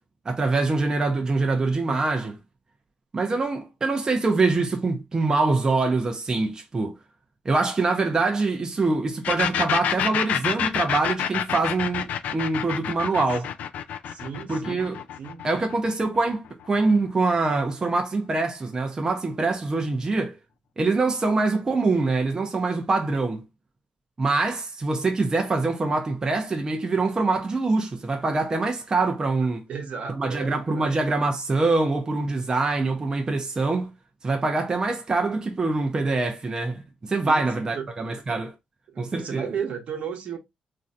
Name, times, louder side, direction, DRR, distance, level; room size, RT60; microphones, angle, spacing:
voice 1, 0.3-2.4 3.1-6.9 7.4-13.5 14.5-15.0 15.4-20.3 20.8-23.4 24.2-29.6 30.1-33.9 34.2-38.5 39.0-39.5, right 3 dB, 30° right, 0.6 m, -24 dB
sound 1, 9.2-16.8, left 9 dB, 80° left, 0.3 m, -28 dB
voice 2, 14.1-14.9 15.2-15.4 29.4-30.9 37.2-37.9 38.9-40.4, right 7 dB, 65° right, 0.9 m, -35 dB
3.1 x 2.6 x 2.5 m
cardioid pair, 95°, 3 cm